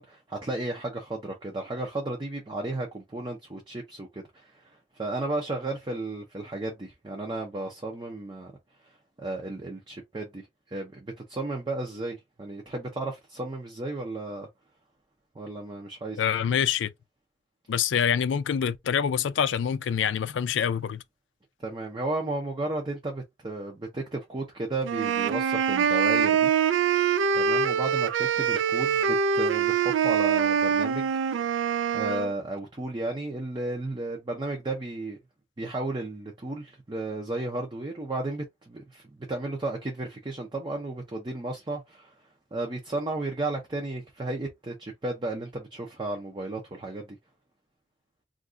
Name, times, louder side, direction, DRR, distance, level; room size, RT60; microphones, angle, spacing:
voice 1, 0.0-8.5 8.8-14.5 15.3-16.2 21.6-26.5 27.3-31.6 31.9-35.2 35.6-39.0 39.3-42.1 42.5-47.1, right 2 dB, 25° right, 0.5 m, -34 dB
voice 2, 16.2-16.9 17.7-21.0, left 8 dB, 80° left, 0.3 m, -26 dB
sound 1, 24.8-32.3, right 7 dB, 85° right, 0.3 m, -24 dB
2.5 x 2.3 x 3.6 m
head